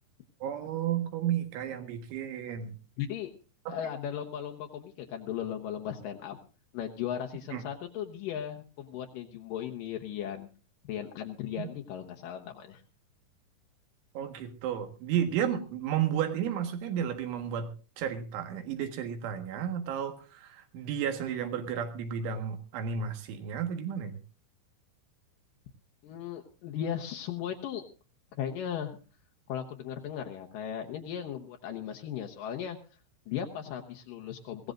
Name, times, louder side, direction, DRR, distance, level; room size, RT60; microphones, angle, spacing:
voice 1, 0.4-2.8 3.7-3.8 7.5-7.6 11.6-11.7 14.2-17.7 18.0-24.2, right 9 dB, 80° right, 6 dB, 4.0 m, -32 dB
voice 2, 3.0-3.3 3.7-6.4 6.7-10.5 10.9-12.8 26.0-27.8 28.4-29.0 29.5-32.8 33.3-34.7, left 9 dB, 85° left, 3 dB, 1.9 m, -37 dB
22.0 x 16.0 x 2.5 m, 0.35 s
omnidirectional pair, 5.4 m